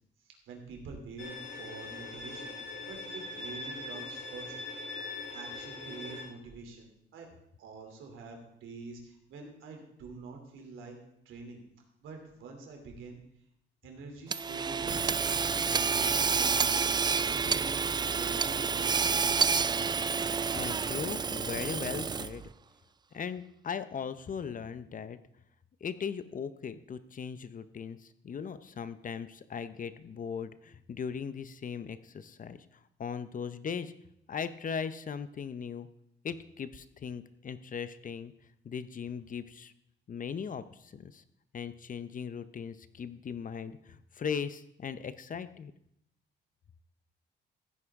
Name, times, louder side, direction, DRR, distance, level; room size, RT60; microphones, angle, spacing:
voice 1, 0.2-2.6 2.9-4.5 5.3-7.3 7.6-11.0 11.2-11.6 12.0-13.2 13.8-15.2 15.5-17.8 18.1-19.3, right 3 dB, 80° right, 2 dB, 3.1 m, -46 dB
Bowed string instrument, 1.2-6.2, left 2 dB, 80° left, 5.5 m, -41 dB
Hammer / Sawing, 14.3-22.5, right 5 dB, 20° right, 0.3 m, -29 dB
voice 2, 20.5-22.5 23.1-25.2 25.8-32.6 33.0-33.9 34.3-35.9 36.2-38.3 38.6-39.7 40.1-41.2 41.5-45.7, left 6 dB, 40° left, 13 dB, 0.7 m, -38 dB
15.0 x 9.5 x 3.7 m, 0.76 s
cardioid pair, 90°, 20 cm